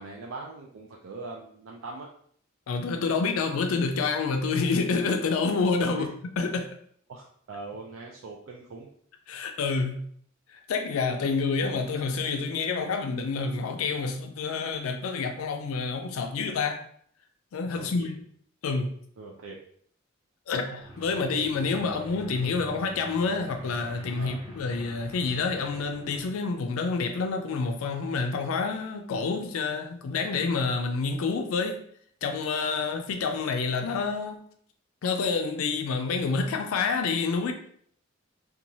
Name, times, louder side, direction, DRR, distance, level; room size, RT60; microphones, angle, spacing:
voice 1, 0.0-2.1 5.9-6.1 7.1-8.9 17.7-18.2 19.2-19.6 21.1-22.1 24.2-24.4, right 3 dB, 70° right, -1 dB, 0.4 m, -41 dB
voice 2, 2.7-6.1 6.4-6.7 9.3-10.0 10.5-16.8 17.5-18.2 18.6-18.9 20.5-31.8 32.2-34.4 35.0-37.5, left 4 dB, 85° left, 5 dB, 0.4 m, -28 dB
sound 1, 20.8-26.3, left 1 dB, 20° right, 0.7 m, -46 dB
2.9 x 2.3 x 2.6 m, 0.62 s
head